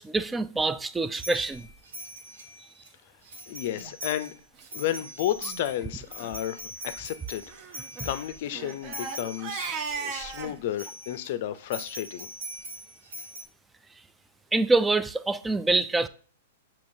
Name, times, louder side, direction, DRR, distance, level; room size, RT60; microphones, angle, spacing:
voice 1, 0.0-1.7 14.5-16.1, right 3 dB, 10° right, 0.3 m, -25 dB
sound 1, 1.1-2.9 3.3-4.3 4.6-10.4 10.7-11.3 11.7-13.4, equal, 80° right, 1.7 m, -42 dB
voice 2, 3.5-4.3 4.7-7.5 8.0-9.7 10.0-12.3, left 12 dB, 55° left, 0.5 m, -32 dB
Crying sobbing, 3.7-3.9 4.6-4.7 5.0-5.1 5.4-5.6 6.1-6.3 7.5-10.6, right 5 dB, 40° right, 0.7 m, -37 dB
6.9 x 2.9 x 2.6 m
hypercardioid pair, 120°, 0 cm